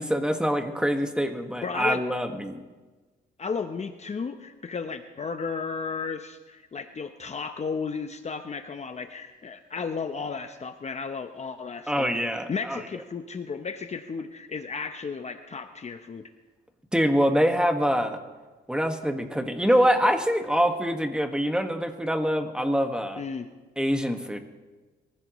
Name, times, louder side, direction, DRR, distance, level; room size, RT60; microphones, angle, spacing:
voice 1, 0.0-2.6 11.9-12.8 16.9-18.2 18.7-23.2 23.8-24.4, equal, 5° right, 5 dB, 1.7 m, -25 dB
voice 2, 1.6-2.0 3.4-16.2 23.2-23.5, left 5 dB, 35° left, 7 dB, 0.9 m, -34 dB
23.0 x 15.5 x 3.1 m, 1.2 s
cardioid pair, 90°, 20 cm